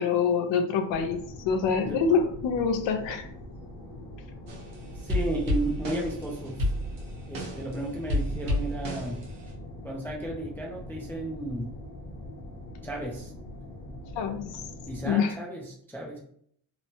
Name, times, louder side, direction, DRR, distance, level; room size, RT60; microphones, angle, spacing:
voice 1, 0.0-3.3 14.2-14.6 15.1-15.3, left 6 dB, 80° left, 7 dB, 0.5 m, -26 dB
sound 1, 0.9-15.1, left 1 dB, 55° left, 0.8 m, -43 dB
sound 2, 4.5-4.7 5.1-7.7 8.1-9.5, left 1 dB, 50° right, 0.9 m, -30 dB
voice 2, 5.0-6.7 7.3-9.3 9.8-11.7 12.8-13.3 14.9-16.2, right 1 dB, 5° left, -2 dB, 0.3 m, -34 dB
3.0 x 2.1 x 2.7 m, 0.62 s
cardioid pair, 145°, 44 cm